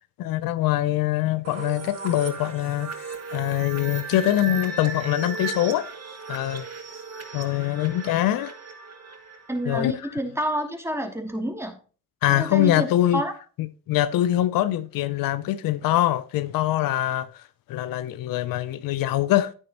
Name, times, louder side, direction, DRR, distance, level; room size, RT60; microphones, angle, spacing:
voice 1, 0.2-2.9 3.3-5.9 6.3-6.7 7.3-8.5 9.7-10.2 12.2-13.2 13.6-17.4 17.7-19.5, left 13 dB, 90° left, 0.6 m, -23 dB
sound 1, 1.4-10.1, right 4 dB, 50° right, 2.1 m, -36 dB
voice 2, 9.5-11.8 12.3-13.3, equal, 10° right, 2.6 m, -29 dB
9.9 x 9.2 x 3.0 m
supercardioid pair, 55°, 33 cm